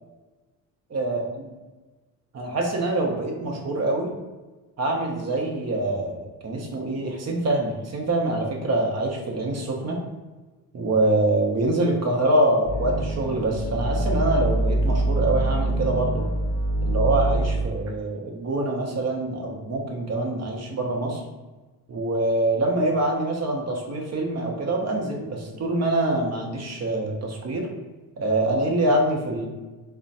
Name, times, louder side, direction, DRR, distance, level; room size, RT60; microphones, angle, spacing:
voice 1, 0.9-1.2 2.3-4.1 4.8-10.0 10.7-16.3 16.8-21.2 21.9-27.7 28.2-29.5, right 2 dB, 40° right, 1 dB, 0.8 m, -25 dB
sound 1, 12.6-17.6, right 2 dB, 70° right, 1.0 m, -24 dB
3.9 x 2.2 x 2.5 m, 1.2 s
supercardioid pair, 70°, 41 cm